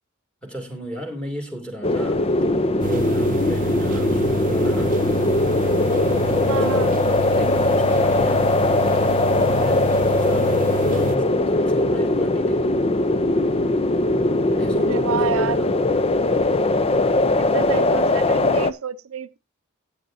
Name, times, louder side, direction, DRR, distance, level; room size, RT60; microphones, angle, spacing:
voice 1, 0.4-2.3 2.8-5.0 6.3-8.7 9.4-12.8 14.6-15.8, equal, 5° left, 2.6 m, -35 dB
sound 1, 1.8-18.7, left 2 dB, 30° left, 0.5 m, -20 dB
sound 2, 2.8-11.2, right 6 dB, 40° right, 0.6 m, -29 dB
voice 2, 6.3-7.0 14.8-15.6 17.4-19.4, right 7 dB, 80° right, 0.6 m, -29 dB
15.5 x 9.1 x 2.7 m
head